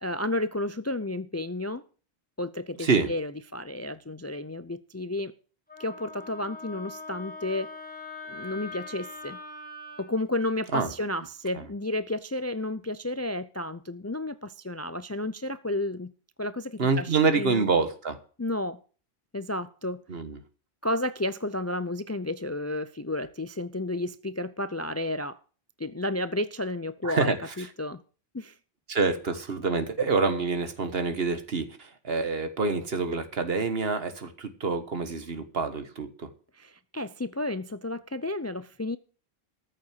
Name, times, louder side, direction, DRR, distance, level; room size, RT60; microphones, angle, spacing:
voice 1, 0.0-1.8 2.4-5.3 5.8-7.7 8.3-9.4 10.0-16.1 16.4-17.7 18.4-18.8 19.3-20.0 20.8-25.4 25.8-28.0 28.3-28.5 36.5-39.0, left 1 dB, 25° left, 0.3 m, -32 dB
voice 2, 2.8-3.1 10.7-10.9 11.6-11.7 16.8-18.2 20.1-20.4 27.0-27.7 28.9-36.3, right 4 dB, 70° right, 1.7 m, -27 dB
Wind instrument woodwind instrument, 5.7-10.1, left 3 dB, 10° left, 1.7 m, -42 dB
14.0 x 6.6 x 7.4 m
omnidirectional pair, 1.0 m